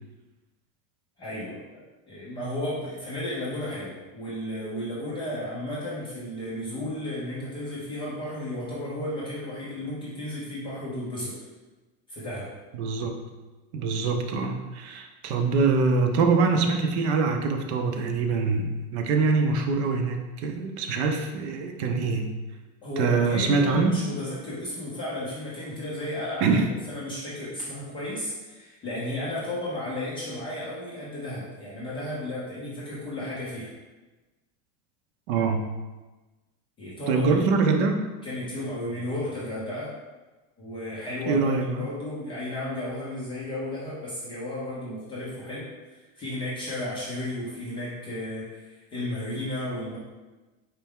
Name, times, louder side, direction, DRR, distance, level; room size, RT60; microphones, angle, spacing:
voice 1, 1.2-11.4 12.1-12.5 22.8-26.6 26.9-33.7 36.8-37.4 38.2-39.9 40.6-50.0, left 1 dB, 15° left, -8 dB, 0.4 m, -33 dB
voice 2, 12.7-13.2 13.7-22.3 23.0-23.9 26.4-26.7 35.3-35.7 37.1-38.0 41.3-41.8, right 4 dB, 55° right, 4 dB, 0.6 m, -24 dB
4.4 x 3.3 x 3.5 m, 1.2 s
supercardioid pair, 175°, 41 cm